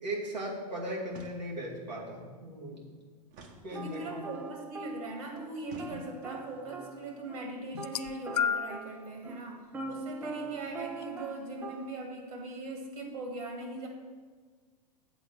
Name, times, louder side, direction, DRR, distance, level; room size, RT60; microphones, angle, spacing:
voice 1, 0.0-2.8 3.6-4.3, right 1 dB, 90° right, -5 dB, 2.6 m, -37 dB
sound 1, 1.1-1.8 3.3-4.3 5.6-6.5, right 3 dB, 35° right, 1.2 m, -51 dB
sound 2, 3.7-5.5 5.8-7.5 7.8-11.9, right 3 dB, 10° right, 0.5 m, -43 dB
voice 2, 3.7-9.6 9.9-13.9, right 2 dB, 60° right, 2 dB, 2.3 m, -40 dB
sound 3, 7.7-8.9 9.8-10.0 11.0-11.1, left 7 dB, 65° left, 0.4 m, -32 dB
7.9 x 4.9 x 7.3 m, 1.5 s
figure-of-eight pair, 100°, 21 cm